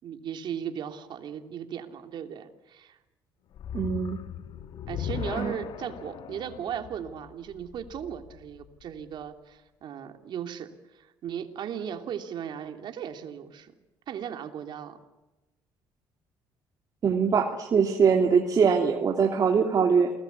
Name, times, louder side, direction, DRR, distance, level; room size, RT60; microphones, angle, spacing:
voice 1, 0.0-3.0 4.9-13.7 14.1-15.0, right 8 dB, 60° right, 6 dB, 3.1 m, -37 dB
sound 1, 3.5-8.8, left 9 dB, 65° left, 1.6 m, -38 dB
voice 2, 3.7-4.2 5.4-5.5 17.0-20.1, right 6 dB, 45° right, 2 dB, 2.9 m, -22 dB
29.0 x 20.0 x 8.4 m, 1.0 s
cardioid pair, 90°, 9 cm